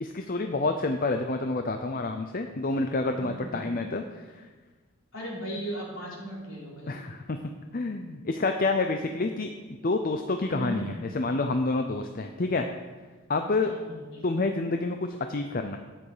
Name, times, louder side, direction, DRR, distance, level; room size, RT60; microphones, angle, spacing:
voice 1, 0.0-4.0 4.3-4.5 6.9-7.4 7.7-9.5 9.8-12.7 13.3-13.7 14.2-15.8, left 3 dB, 40° left, 6 dB, 0.6 m, -28 dB
voice 2, 3.2-3.8 5.1-7.0 10.4-11.0 13.6-14.4, right 1 dB, 60° left, -4 dB, 3.9 m, -38 dB
12.5 x 9.5 x 5.0 m, 1.3 s
head